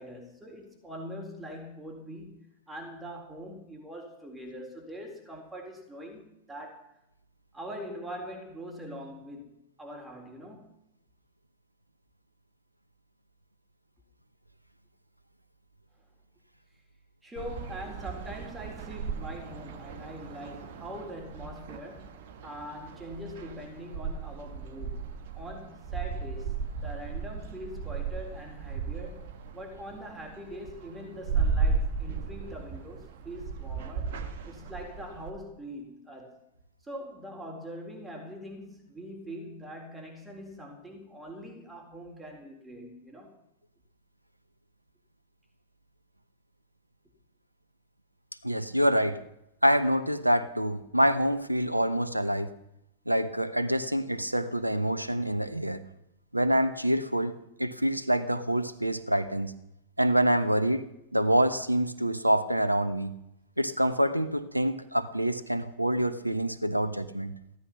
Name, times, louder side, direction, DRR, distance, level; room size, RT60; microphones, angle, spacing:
voice 1, 0.0-6.9 7.5-10.8 17.2-25.1 25.3-26.6 26.8-34.2 34.5-36.4 36.8-43.3, equal, 10° right, 3.9 m, -43 dB
sound 1, 17.4-35.3, right 5 dB, 55° right, 1.6 m, -35 dB
voice 2, 48.4-49.2 49.6-52.5 53.1-55.8 56.3-57.3 57.6-59.5 60.0-60.9 61.1-63.1 63.6-67.3, equal, 85° right, 1.0 m, -26 dB
16.5 x 13.0 x 6.0 m
figure-of-eight pair, 90°, 0 cm